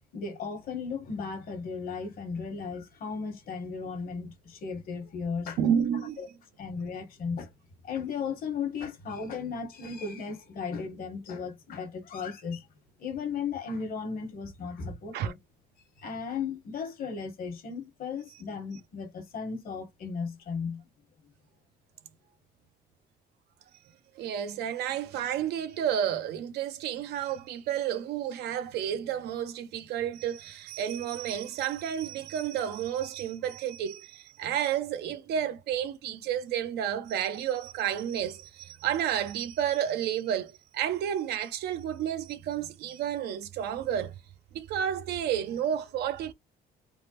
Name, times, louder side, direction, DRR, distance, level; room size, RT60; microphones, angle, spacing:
voice 1, 0.1-5.6 6.2-6.3 6.6-7.5 7.8-12.6 13.0-15.4 16.0-20.8, left 5 dB, 60° left, 1.2 m, -35 dB
voice 2, 5.6-6.2 15.1-15.3 24.2-44.1 44.5-46.3, right 9 dB, 75° right, 0.6 m, -31 dB
3.4 x 2.1 x 2.8 m
cardioid pair, 110°, 17 cm